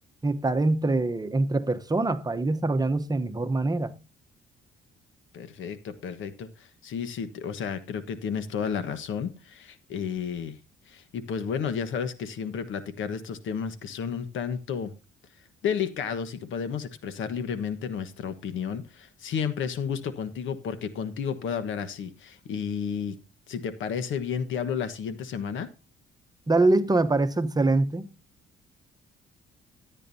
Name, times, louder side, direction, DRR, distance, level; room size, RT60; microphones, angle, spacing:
voice 1, 0.2-3.9 26.5-28.1, right 2 dB, 20° right, 0.9 m, -24 dB
voice 2, 5.3-10.6 10.9-14.9 15.6-23.2 23.5-25.7, left 7 dB, 80° left, 1.3 m, -32 dB
13.5 x 9.1 x 2.7 m
cardioid pair, 90°, 20 cm